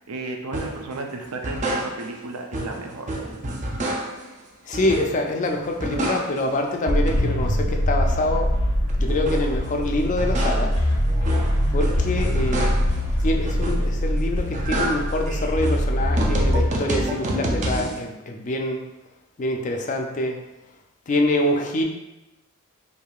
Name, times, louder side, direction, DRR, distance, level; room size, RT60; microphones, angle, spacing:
voice 1, 0.0-3.1, right 3 dB, 85° right, 3 dB, 0.5 m, -33 dB
sound 1, 0.5-0.8 1.3-2.3 2.5-4.3 4.7-5.4 5.6-6.6 6.9-9.6 10.0-13.0 13.5-14.1 14.4-18.0, right 1 dB, 35° right, 0.4 m, -28 dB
voice 2, 4.7-8.5 9.0-10.8 11.7-12.7 13.2-18.8 19.4-20.4 21.1-21.8, left 1 dB, 35° left, 2 dB, 0.4 m, -25 dB
sound 2, 6.9-16.7, left 1 dB, 85° left, 0.7 m, -23 dB
4.6 x 2.7 x 2.3 m, 0.96 s
head